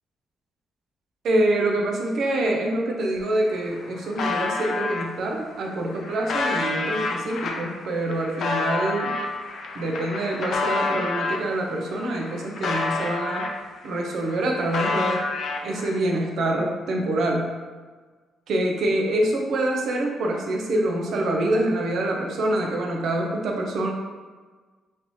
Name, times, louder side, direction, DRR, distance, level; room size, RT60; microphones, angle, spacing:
voice 1, 1.2-9.2 9.7-13.5 13.8-15.2 15.6-17.5 18.5-23.9, right 1 dB, 70° right, 0 dB, 0.6 m, -25 dB
sound 1, 3.2-3.3 3.5-5.0 5.7-11.5 11.9-13.9 14.1-16.0, left 3 dB, 60° left, 0.4 m, -29 dB
3.2 x 2.7 x 3.0 m, 1.4 s
cardioid pair, 90°, 0 cm